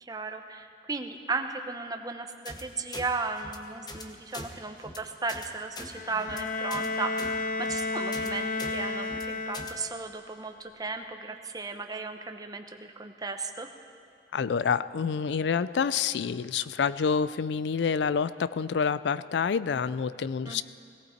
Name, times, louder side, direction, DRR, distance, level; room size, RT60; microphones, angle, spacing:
voice 1, 0.0-13.7 20.4-20.6, right 4 dB, 20° right, 6 dB, 0.8 m, -35 dB
sound 1, 2.4-2.6 2.9-3.1 3.4-3.6 3.9-4.0 4.3-4.5 4.8-5.0 5.3-5.5 5.7-5.9 6.2-6.4 6.7-6.9 7.2-7.3 7.6-7.8 8.1-8.3 8.6-8.7 9.0-9.2 9.5-9.7, left 2 dB, 25° left, 0.9 m, -41 dB
Bowed string instrument, 5.9-10.0, left 3 dB, 50° left, 1.0 m, -32 dB
voice 2, 14.3-20.6, left 6 dB, 70° left, 16 dB, 0.4 m, -28 dB
18.0 x 17.5 x 4.4 m, 2.4 s
head